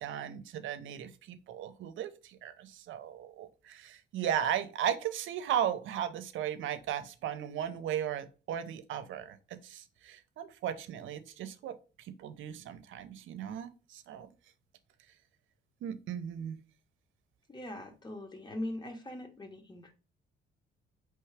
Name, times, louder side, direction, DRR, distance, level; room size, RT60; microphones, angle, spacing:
voice 1, 0.0-14.3 15.8-16.6, right 9 dB, 80° right, 11 dB, 0.6 m, -36 dB
voice 2, 17.5-19.9, left 1 dB, 20° left, 4 dB, 1.2 m, -41 dB
4.6 x 3.1 x 3.3 m, 0.33 s
cardioid pair, 90°, 20 cm